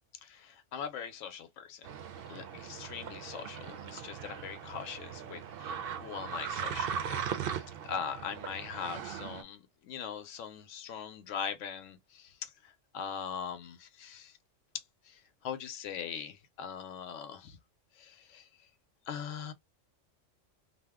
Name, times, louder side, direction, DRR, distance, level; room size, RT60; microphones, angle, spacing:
voice 1, 0.2-1.9 2.3-14.4 14.7-17.6 17.9-18.5 19.1-19.5, left 7 dB, 80° left, 1.0 m, -41 dB
sound 1, 1.8-9.4, right 8 dB, 60° right, 0.7 m, -39 dB
2.7 x 2.0 x 3.4 m
omnidirectional pair, 1.3 m